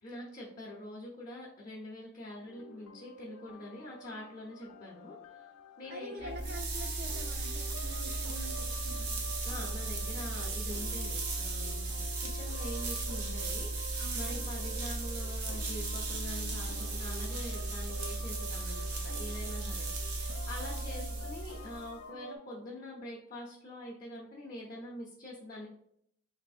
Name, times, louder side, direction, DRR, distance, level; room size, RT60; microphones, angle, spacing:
voice 1, 0.0-5.5 5.8-6.6 9.4-20.2 20.5-25.7, left 1 dB, 35° left, -4 dB, 0.6 m, -45 dB
sound 1, 2.4-22.4, left 1 dB, 90° left, 0.4 m, -49 dB
voice 2, 5.9-9.2 14.0-14.6 21.0-21.2, right 1 dB, 45° right, 5 dB, 0.5 m, -47 dB
sound 2, 6.2-22.0, right 3 dB, 85° right, 0.7 m, -36 dB
3.3 x 2.9 x 2.4 m, 0.70 s
head